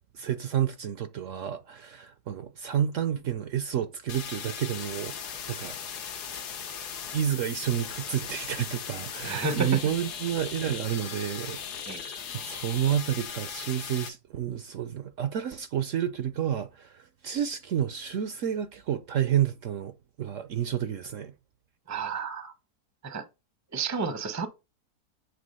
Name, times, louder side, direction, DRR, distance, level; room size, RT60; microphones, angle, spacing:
voice 1, 0.1-5.8 7.1-21.3, right 10 dB, 65° right, 0.9 m, -30 dB
sound 1, 4.1-14.1, left 7 dB, 85° left, 1.6 m, -38 dB
voice 2, 9.2-9.8 11.9-12.0 21.9-22.5 23.0-23.2 23.7-24.5, right 4 dB, 15° right, 0.6 m, -31 dB
8.1 x 3.5 x 5.4 m
omnidirectional pair, 1.7 m